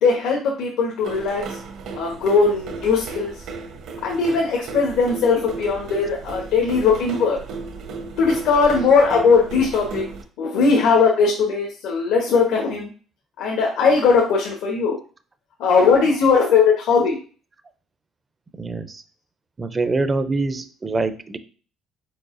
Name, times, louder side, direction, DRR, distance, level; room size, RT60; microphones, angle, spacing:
voice 1, 0.0-1.6 1.9-3.3 4.0-7.4 8.2-10.0 10.4-12.9 13.4-15.0 15.6-17.2, left 5 dB, 85° left, -1 dB, 1.0 m, -19 dB
sound 1, 1.0-10.2, right 4 dB, 65° right, 0.8 m, -35 dB
voice 2, 18.6-19.0 19.6-21.4, right 3 dB, 20° right, 10 dB, 0.4 m, -24 dB
4.7 x 4.4 x 2.5 m, 0.39 s
cardioid pair, 150°, 0 cm